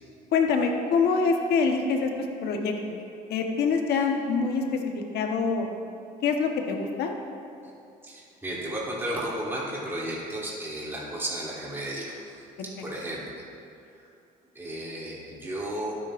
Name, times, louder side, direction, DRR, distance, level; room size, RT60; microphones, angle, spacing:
voice 1, 0.3-2.1 2.4-3.0 3.3-5.7 6.2-7.1, left 5 dB, 75° left, 2 dB, 1.2 m, -25 dB
voice 2, 8.0-13.5 14.0-14.1 14.5-16.0, right 1 dB, 15° right, -7 dB, 3.0 m, -34 dB
23.5 x 9.3 x 2.6 m, 2.6 s
cardioid pair, 110°, 17 cm